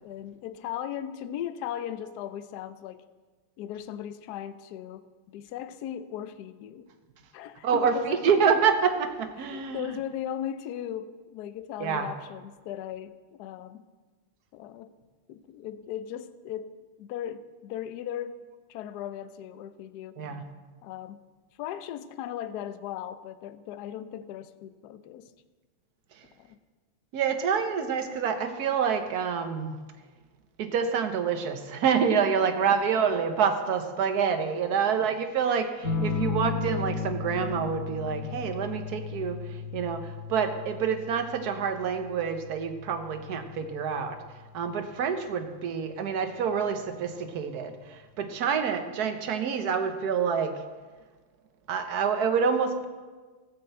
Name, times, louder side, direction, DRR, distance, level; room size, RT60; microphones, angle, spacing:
voice 1, 0.0-3.1 3.6-6.9 7.3-8.4 9.4-13.9 14.5-14.9 15.3-18.4 18.7-20.2 20.8-21.2 21.6-25.3 26.4-26.6 32.7-32.8 34.7-35.1, left 10 dB, 80° left, 12 dB, 0.9 m, -38 dB
voice 2, 7.6-9.9 11.8-12.1 20.2-20.4 27.1-29.8 30.6-44.2 44.5-50.6 51.7-52.9, right 6 dB, 60° right, 7 dB, 1.2 m, -27 dB
sound 1, 35.8-44.9 46.4-46.9, left 4 dB, 40° left, 2.4 m, -35 dB
14.0 x 6.0 x 7.9 m, 1.4 s
omnidirectional pair, 2.4 m